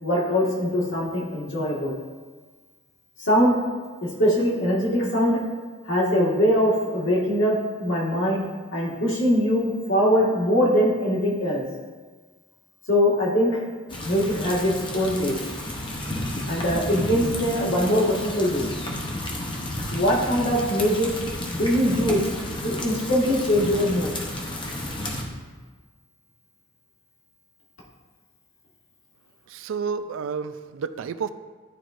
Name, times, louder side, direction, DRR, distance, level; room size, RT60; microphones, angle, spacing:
voice 1, 0.0-2.0 3.2-3.6 4.0-5.4 5.8-8.5 8.7-11.6 12.9-13.6 14.0-15.4 16.5-18.7 19.9-21.1 21.5-22.2 22.6-24.1, equal, 70° left, -5 dB, 1.7 m, -22 dB
sound 1, 13.9-25.2, left 1 dB, 25° left, 0.7 m, -32 dB
voice 2, 29.5-31.3, right 6 dB, 75° right, 12 dB, 0.3 m, -30 dB
11.0 x 3.8 x 2.5 m, 1.4 s
head